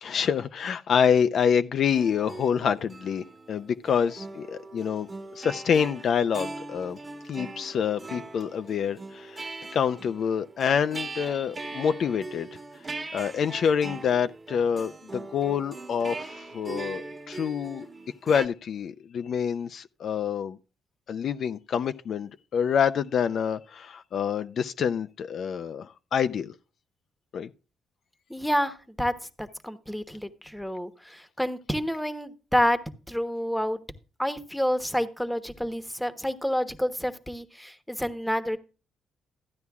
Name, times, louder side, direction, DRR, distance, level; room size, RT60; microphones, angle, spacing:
voice 1, 0.0-5.1 5.3-7.0 7.3-12.5 13.1-17.9 18.2-20.6 21.1-26.5 27.3-27.5, left 7 dB, 60° left, 0.5 m, -27 dB
sound 1, 1.9-18.5, right 3 dB, 25° right, 1.4 m, -40 dB
voice 2, 28.3-29.1 29.4-32.8 33.1-33.8 34.2-38.6, equal, 5° left, 1.1 m, -28 dB
14.0 x 9.6 x 2.4 m
cardioid pair, 90°, 0 cm